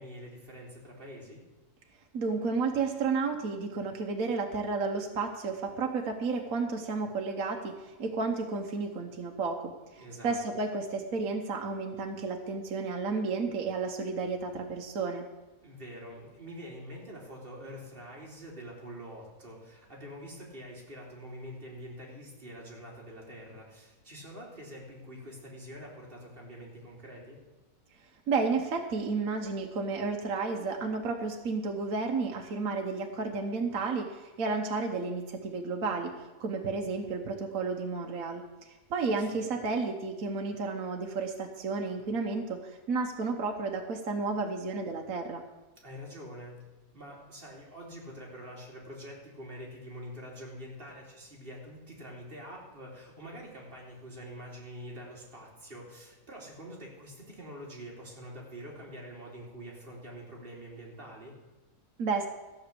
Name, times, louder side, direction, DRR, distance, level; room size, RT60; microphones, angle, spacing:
voice 1, 0.0-1.4 10.0-10.4 15.6-27.4 39.0-39.4 45.8-46.6 46.9-61.4, equal, 35° right, -3 dB, 3.2 m, -45 dB
voice 2, 2.1-9.7 10.2-15.2 28.3-38.4 38.9-45.4 62.0-62.3, right 4 dB, 60° right, 2 dB, 1.4 m, -32 dB
14.0 x 6.1 x 8.4 m, 1.1 s
omnidirectional pair, 1.7 m